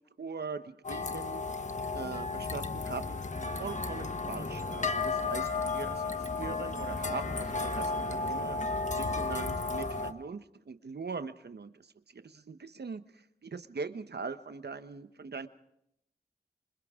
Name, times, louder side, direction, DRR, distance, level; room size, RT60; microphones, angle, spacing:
voice 1, 0.0-1.4 1.9-3.2 3.6-8.6 9.0-11.7 12.1-13.0 13.4-15.5, right 4 dB, 80° right, 10 dB, 1.0 m, -41 dB
sound 1, 0.8-10.1, left 3 dB, 45° left, 1.3 m, -33 dB
27.0 x 26.5 x 3.7 m, 0.77 s
wide cardioid pair, 75°, 17 cm